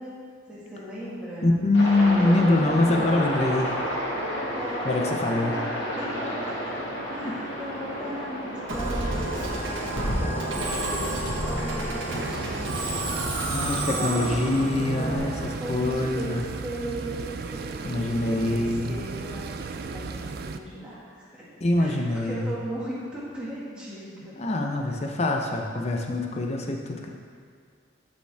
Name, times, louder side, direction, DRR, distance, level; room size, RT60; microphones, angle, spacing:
voice 1, 0.0-1.5 2.2-3.6 4.5-5.7 6.0-6.7 7.1-10.3 10.5-13.1 13.9-16.4 16.6-21.4 21.8-24.4, right 1 dB, 5° right, -9 dB, 1.9 m, -37 dB
voice 2, 1.4-3.7 4.8-5.5 7.2-7.3 13.5-15.3 15.7-16.5 17.8-19.0 21.6-22.6 24.4-27.1, left 2 dB, 35° left, 2 dB, 0.7 m, -24 dB
Aircraft, 1.7-15.2, equal, 75° left, 1.8 m, -32 dB
Musical instrument, 8.7-16.0, right 2 dB, 85° right, 1.3 m, -31 dB
sound 1, 12.1-20.6, right 4 dB, 50° right, 0.3 m, -35 dB
13.0 x 5.3 x 3.4 m, 2.1 s
head